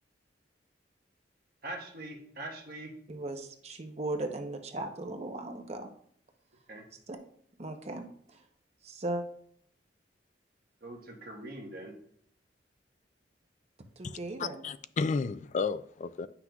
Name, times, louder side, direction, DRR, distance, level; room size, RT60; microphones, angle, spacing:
voice 1, 1.6-2.9 6.7-6.8 10.8-11.9, right 1 dB, 55° right, 1.3 m, -42 dB
voice 2, 3.1-5.9 7.1-7.2 7.6-8.4 8.8-9.2 14.0-14.6, right 2 dB, 35° right, 0.7 m, -37 dB
voice 3, 14.0-16.3, left 4 dB, 40° left, 0.3 m, -33 dB
9.3 x 5.9 x 2.3 m
head